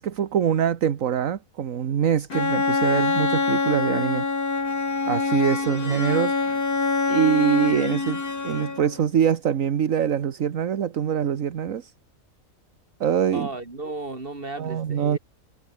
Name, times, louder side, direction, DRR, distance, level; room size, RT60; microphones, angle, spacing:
voice 1, 0.0-4.3 5.1-6.5 7.1-11.9 13.0-13.5 14.6-15.2, right 8 dB, 65° right, 1.5 m, -24 dB
Bowed string instrument, 2.3-9.0, left 3 dB, 85° left, 3.9 m, -25 dB
voice 2, 5.7-6.1 13.3-15.2, right 2 dB, 40° right, 3.8 m, -35 dB
omnidirectional pair, 1.5 m